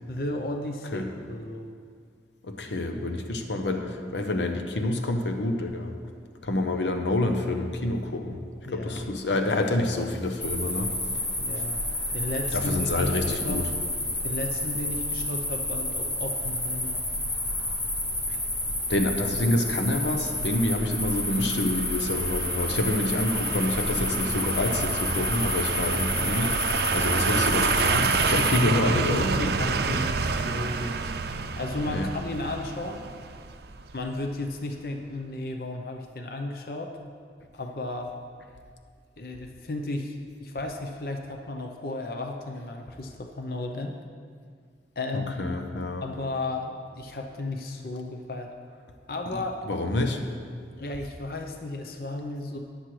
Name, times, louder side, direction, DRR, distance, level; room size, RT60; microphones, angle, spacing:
voice 1, 0.1-1.7 8.6-9.1 11.4-11.8 12.1-13.7 14.2-17.0 28.4-31.1 31.6-33.0 33.9-36.9 37.5-38.1 39.2-44.0 45.0-45.6 46.0-48.5 49.1-49.6 50.8-52.6, left 2 dB, 55° left, 3 dB, 0.7 m, -34 dB
voice 2, 2.5-5.9 6.4-8.4 8.7-10.9 12.5-13.6 18.9-26.5 26.9-29.6 31.9-32.1 45.4-46.0 49.7-50.2, left 2 dB, 90° left, 5 dB, 0.8 m, -27 dB
sound 1, 10.4-28.6, left 1 dB, 30° left, 2.0 m, -30 dB
sound 2, 19.3-34.2 34.5-34.6, right 4 dB, 65° right, 0.5 m, -29 dB
13.5 x 9.8 x 3.2 m, 2.1 s
head